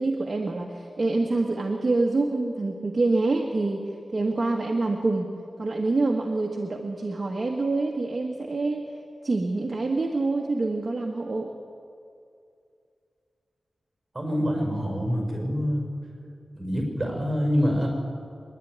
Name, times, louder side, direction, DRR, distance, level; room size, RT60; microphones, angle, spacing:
voice 1, 0.0-5.3 5.6-8.9 9.2-11.5, right 3 dB, 40° right, 1 dB, 1.4 m, -26 dB
voice 2, 14.1-15.9 16.5-17.9, equal, 20° right, 0 dB, 5.9 m, -26 dB
24.0 x 11.5 x 9.5 m, 2.4 s
wide cardioid pair, 115°, 0 cm